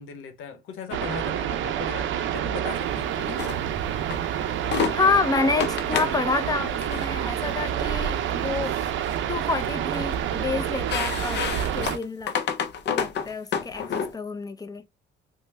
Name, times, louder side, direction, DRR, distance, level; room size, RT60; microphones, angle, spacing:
voice 1, 0.0-3.3, left 6 dB, 90° left, 0.8 m, -38 dB
sound 1, 0.9-12.0, right 10 dB, 75° right, 0.5 m, -28 dB
sound 2, 3.3-3.6 4.1-4.2 4.6-5.0 5.6-6.2 6.7-7.1 7.8-8.0 8.5-9.2 9.5-10.2 10.6-14.1, left 7 dB, 60° left, 0.6 m, -29 dB
voice 2, 4.9-8.8 9.3-11.4 11.7-12.3 12.9-14.8, left 4 dB, 20° left, 0.5 m, -28 dB
3.1 x 2.1 x 3.2 m
cardioid pair, 90°, 20 cm